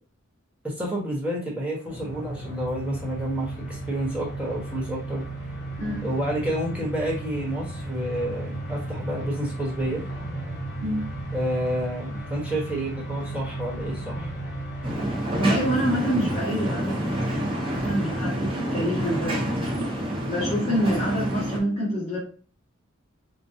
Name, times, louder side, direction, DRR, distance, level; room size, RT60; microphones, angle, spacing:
voice 1, 0.6-5.2 6.0-10.0 11.3-14.3, right 1 dB, 5° right, -4 dB, 1.0 m, -29 dB
sound 1, 1.8-18.2, right 1 dB, 50° left, 1.1 m, -39 dB
sound 2, 1.9-14.9, right 2 dB, 85° left, 1.0 m, -36 dB
sound 3, 14.8-21.6, right 1 dB, 25° right, 0.7 m, -28 dB
voice 2, 15.4-17.2 17.6-19.5 20.3-22.2, equal, 30° left, -8 dB, 1.4 m, -26 dB
4.4 x 2.1 x 2.7 m, 0.38 s
head